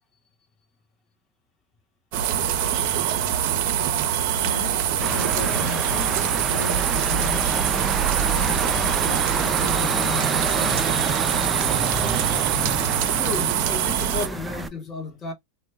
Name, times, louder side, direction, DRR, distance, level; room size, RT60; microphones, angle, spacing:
sound 1, 2.1-14.3, right 10 dB, 60° right, 0.5 m, -24 dB
voice 1, 5.0-6.2 6.5-7.6 8.3-11.0, left 6 dB, 65° left, 0.8 m, -35 dB
sound 2, 5.0-14.7, right 3 dB, 10° right, 0.4 m, -28 dB
voice 2, 13.1-15.3, left 4 dB, 25° left, 1.0 m, -33 dB
2.2 x 2.1 x 3.2 m
hypercardioid pair, 115°, 0 cm